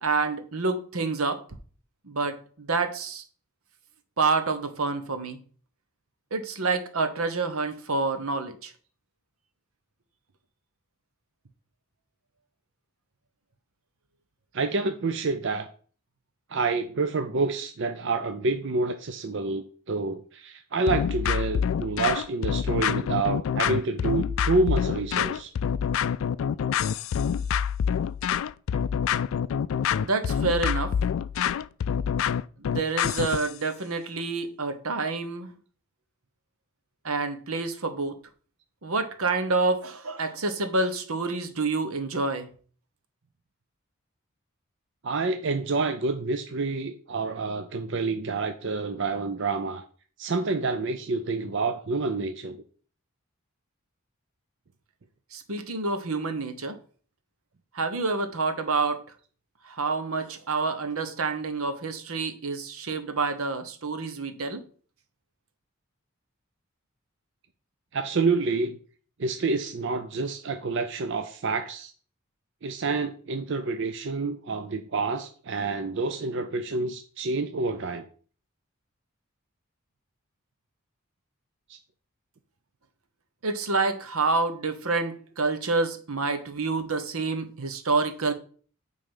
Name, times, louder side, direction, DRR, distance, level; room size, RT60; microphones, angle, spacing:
voice 1, 0.0-1.4 2.0-3.2 4.2-5.4 6.3-8.7 30.0-30.9 32.6-35.5 37.0-38.2 38.8-42.5 55.3-56.8 57.7-59.0 59.6-64.6 83.4-88.3, right 3 dB, 80° right, 1.1 m, -28 dB
voice 2, 14.5-15.7 16.5-25.5 45.0-49.8 50.2-52.6 67.9-68.8 69.2-71.9 72.6-78.1 81.7-81.8, right 3 dB, 55° right, 0.5 m, -28 dB
sound 1, 20.9-33.5, left 8 dB, 65° left, 0.3 m, -26 dB
9.0 x 3.8 x 5.4 m
head